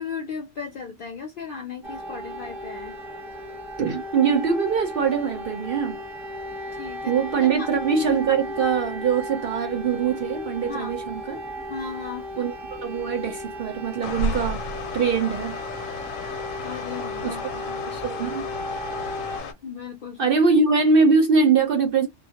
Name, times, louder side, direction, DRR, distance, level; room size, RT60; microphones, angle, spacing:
voice 1, 0.0-3.0 6.8-7.7 10.7-10.9 11.7-12.3 16.6-17.8 19.6-20.4, left 5 dB, 65° left, 0.5 m, -36 dB
sound 1, 1.8-19.4, left 1 dB, ahead, 0.6 m, -35 dB
voice 2, 3.8-6.0 7.1-11.4 12.4-14.6 14.9-15.6 17.2-17.4 17.9-18.5 20.2-22.1, right 5 dB, 60° right, 0.6 m, -22 dB
sound 2, 14.0-19.5, left 3 dB, 90° left, 1.0 m, -33 dB
2.3 x 2.0 x 2.7 m
omnidirectional pair, 1.3 m